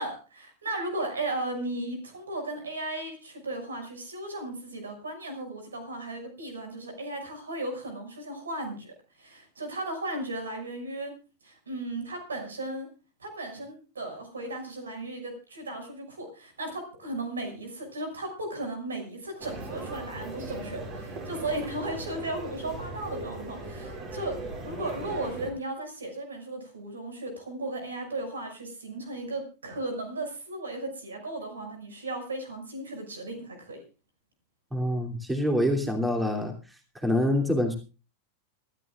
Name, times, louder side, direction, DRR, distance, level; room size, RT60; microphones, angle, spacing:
voice 1, 0.0-11.1 11.4-12.9 13.2-24.4 24.6-33.8, right 2 dB, 70° right, 6 dB, 6.0 m, -36 dB
sound 1, 19.4-25.5, right 2 dB, 40° right, 6.1 m, -38 dB
voice 2, 34.7-36.5 37.0-37.8, left 1 dB, 5° right, 3 dB, 3.0 m, -25 dB
26.5 x 13.0 x 2.4 m, 0.33 s
figure-of-eight pair, 90°, 0 cm